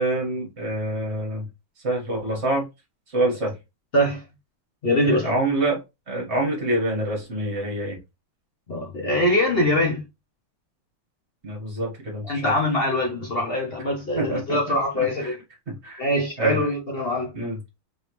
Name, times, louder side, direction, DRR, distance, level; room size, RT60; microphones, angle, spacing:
voice 1, 0.0-1.5 1.8-2.6 3.1-3.6 5.0-5.8 6.1-8.0 11.4-12.5 14.1-15.3 15.7-16.0 16.4-16.6 17.3-17.6, right 1 dB, 35° right, 1.7 m, -26 dB
voice 2, 4.8-5.3 8.7-10.0 12.3-15.4 16.0-17.3, left 1 dB, 50° left, 0.7 m, -23 dB
3.7 x 3.4 x 3.0 m
omnidirectional pair, 2.4 m